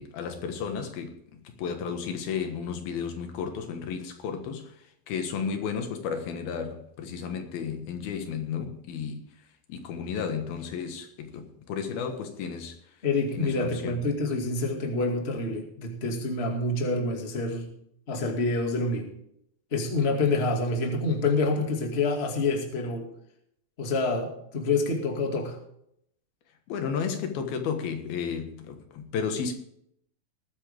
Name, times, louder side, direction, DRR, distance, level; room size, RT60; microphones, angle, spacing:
voice 1, 0.0-4.7 5.1-9.2 9.7-12.7 13.3-14.0 26.7-29.5, left 6 dB, 80° left, 3.3 m, -33 dB
voice 2, 13.0-17.7 18.1-19.1 19.7-23.1 23.8-25.6, left 3 dB, 25° left, 1.7 m, -27 dB
20.0 x 9.8 x 3.5 m
omnidirectional pair, 4.3 m